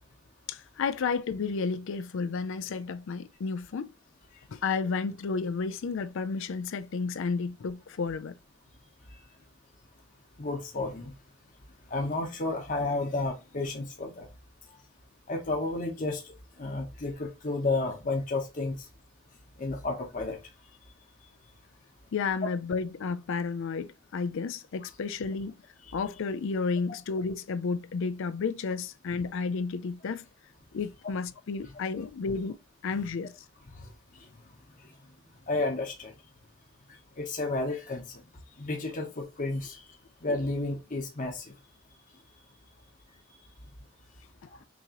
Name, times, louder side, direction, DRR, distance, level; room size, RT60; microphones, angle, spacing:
voice 1, 0.5-3.9 4.5-8.3 22.1-25.5 25.9-30.2 30.7-32.6 32.8-33.3, left 4 dB, 65° left, 0.4 m, -32 dB
voice 2, 10.4-11.1 11.9-14.3 15.3-16.3 16.6-18.8 19.6-20.4 33.7-33.9 35.5-36.1 37.2-38.0 38.6-39.8 40.2-41.5, left 2 dB, 40° left, 0.9 m, -31 dB
6.2 x 3.0 x 2.8 m
head